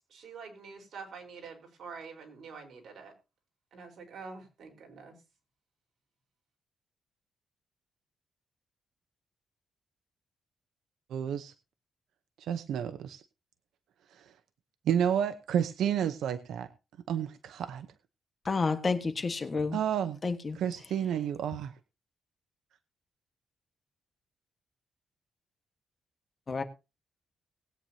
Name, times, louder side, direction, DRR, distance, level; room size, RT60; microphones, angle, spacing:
voice 1, 0.1-3.1 3.7-5.2, right 5 dB, 65° right, 4.3 m, -46 dB
voice 2, 11.1-11.5 12.4-13.2 14.1-14.3 14.9-16.7 17.1-17.9 19.7-20.2 20.5-21.7, right 9 dB, 90° right, 0.8 m, -30 dB
voice 3, 18.5-19.8 20.2-20.6 26.5-26.6, left 4 dB, 30° left, 1.4 m, -30 dB
20.0 x 9.1 x 2.8 m
cardioid pair, 130°, 0 cm